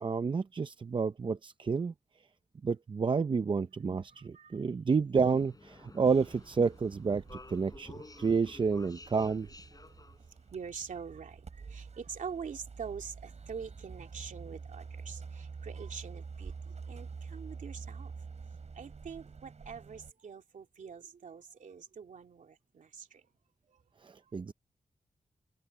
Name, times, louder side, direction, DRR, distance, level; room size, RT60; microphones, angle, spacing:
voice 1, 0.0-1.9 2.6-9.5 24.0-24.5, right 5 dB, 40° right, 0.5 m, -30 dB
voice 2, 4.1-4.6 8.0-8.3 9.9-10.0 10.5-18.1 18.7-23.2 23.7-23.8, right 6 dB, 85° right, 2.7 m, -45 dB
sound 1, 5.2-10.9, left 3 dB, 30° left, 6.0 m, -53 dB
sound 2, 6.0-20.1, right 5 dB, 60° right, 7.5 m, -47 dB
open air
wide cardioid pair, 110°, 13 cm